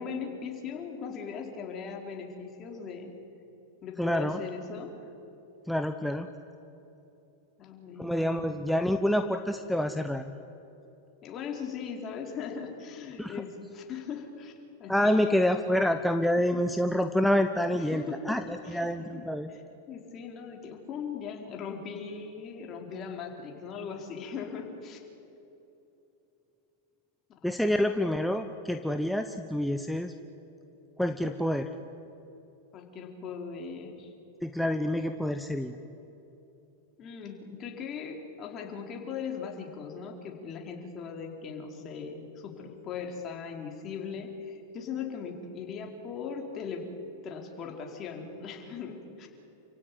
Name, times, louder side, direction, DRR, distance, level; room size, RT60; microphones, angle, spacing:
voice 1, 0.0-3.1 3.8-5.1 7.6-8.6 11.2-14.5 14.8-15.4 16.4-16.6 17.7-18.4 18.6-25.0 27.5-27.8 32.7-34.1 37.0-46.9 47.2-49.3, left 6 dB, 35° left, 2 dB, 4.5 m, -39 dB
voice 2, 4.0-4.4 5.7-6.3 8.0-10.3 13.2-13.3 14.9-19.5 27.4-30.1 31.0-31.7 34.4-35.8, left 1 dB, ahead, 7 dB, 1.0 m, -27 dB
29.0 x 16.5 x 9.5 m, 3.0 s
hypercardioid pair, 100°, 0 cm